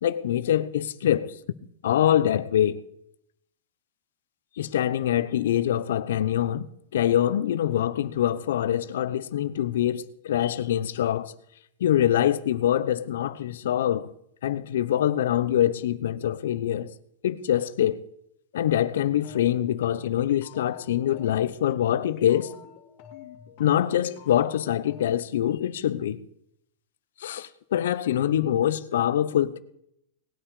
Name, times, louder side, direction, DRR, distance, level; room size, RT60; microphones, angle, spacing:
voice 1, 0.0-1.3 1.8-2.8 4.6-6.6 6.9-11.3 11.8-14.1 14.4-16.9 17.2-18.0 18.5-22.5 23.6-26.2 27.2-29.6, left 11 dB, 85° left, 0.9 m, -24 dB
sound 1, 19.1-25.1, left 9 dB, 45° left, 2.6 m, -47 dB
19.0 x 9.0 x 4.9 m
supercardioid pair, 165°, 0 cm